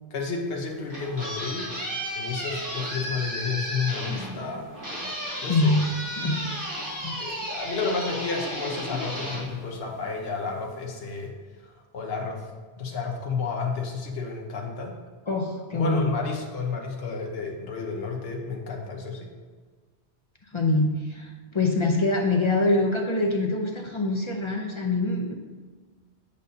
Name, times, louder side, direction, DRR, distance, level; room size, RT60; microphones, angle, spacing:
voice 1, 0.1-1.7 2.2-4.7 5.4-5.8 7.2-11.3 11.6-12.5 12.8-15.0 15.7-19.3, left 4 dB, 60° left, 1 dB, 1.1 m, -31 dB
sound 1, 0.6-10.3, equal, 15° right, 1.4 m, -34 dB
voice 2, 5.5-6.4 7.0-7.2 15.3-16.1 20.5-25.3, left 2 dB, 35° left, 1 dB, 0.5 m, -24 dB
8.4 x 5.2 x 2.7 m, 1.5 s
omnidirectional pair, 1.2 m